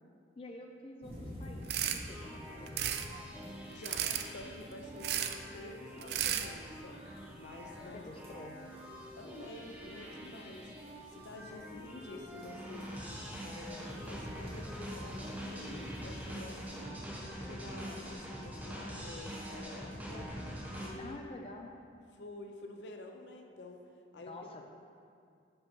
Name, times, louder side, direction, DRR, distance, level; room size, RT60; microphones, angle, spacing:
voice 1, 0.4-3.3 7.9-8.6 21.0-21.7 24.3-24.7, left 2 dB, 30° left, 2 dB, 0.4 m, -48 dB
sound 1, 1.0-16.8, equal, 35° right, 1.5 m, -52 dB
sound 2, 1.7-2.0 2.7-3.1 3.8-4.3 5.0-5.3 6.0-6.5, right 10 dB, 60° right, 0.3 m, -33 dB
sound 3, 2.0-20.9, equal, 10° right, 1.0 m, -45 dB
voice 2, 3.7-7.0 7.4-8.0 9.2-10.7 11.1-13.0 13.4-17.0 17.4-20.3 20.8-21.2 22.2-23.8 24.1-24.3, left 2 dB, 85° left, 4 dB, 0.6 m, -49 dB
5.6 x 5.4 x 4.4 m, 2.4 s
head